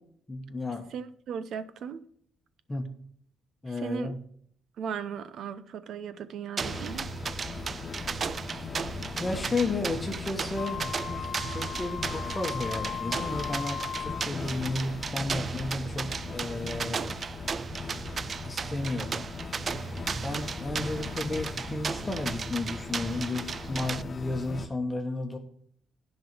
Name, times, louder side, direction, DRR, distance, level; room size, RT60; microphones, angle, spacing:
voice 1, 0.3-0.9 2.7-2.9 3.6-4.2 8.6-8.7 9.2-10.8 11.5-17.1 18.4-19.2 20.2-25.4, left 2 dB, 20° left, 1.4 m, -33 dB
voice 2, 0.9-2.0 3.7-4.2 4.8-7.1, right 7 dB, 70° right, 0.8 m, -37 dB
sound 1, 6.6-24.7, left 4 dB, 35° left, 0.9 m, -39 dB
sound 2, 6.6-24.0, right 5 dB, 45° right, 0.3 m, -35 dB
Wind instrument woodwind instrument, 10.6-14.3, left 8 dB, 60° left, 0.9 m, -37 dB
10.5 x 5.4 x 6.2 m
cardioid pair, 90°, 0 cm